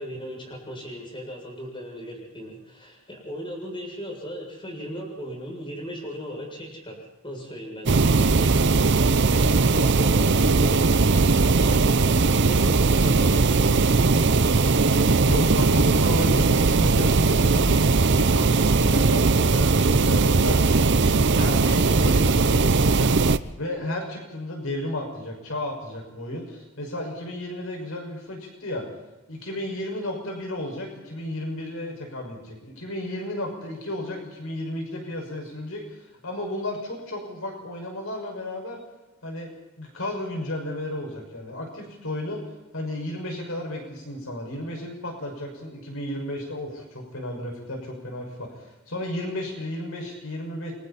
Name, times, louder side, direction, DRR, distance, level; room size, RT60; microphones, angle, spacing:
voice 1, 0.0-7.0 7.2-11.0 11.3-15.5, equal, 25° left, 0 dB, 7.3 m, -37 dB
sound 1, 7.9-23.4, right 3 dB, 55° right, 0.8 m, -19 dB
voice 2, 15.2-23.1 23.6-28.9 29.3-38.8 39.2-39.5 39.8-42.4 42.7-50.7, left 1 dB, 70° left, 1 dB, 5.9 m, -33 dB
30.0 x 24.0 x 4.3 m, 1.0 s
head